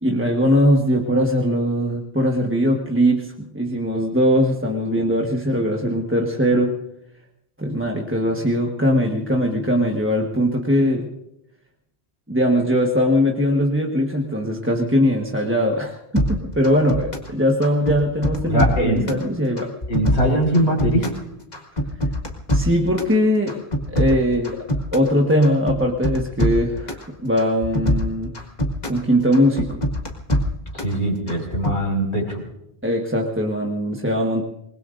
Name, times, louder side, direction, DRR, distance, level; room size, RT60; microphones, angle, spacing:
voice 1, 0.0-6.7 7.6-11.1 12.3-19.7 22.5-24.6 24.9-28.3 28.9-29.8 32.8-34.4, equal, 10° right, -1 dB, 1.3 m, -20 dB
sound 1, 16.2-17.3 17.6-19.2 19.6-21.2 21.5-23.1 23.5-25.1 25.4-27.1 27.4-29.0 29.3-31.0 31.3-31.8, equal, 40° left, 1.9 m, -23 dB
voice 2, 18.4-19.1 19.9-21.1 30.7-32.4, right 1 dB, 85° left, 0 dB, 5.4 m, -21 dB
26.5 x 20.5 x 2.6 m, 0.81 s
omnidirectional pair, 1.1 m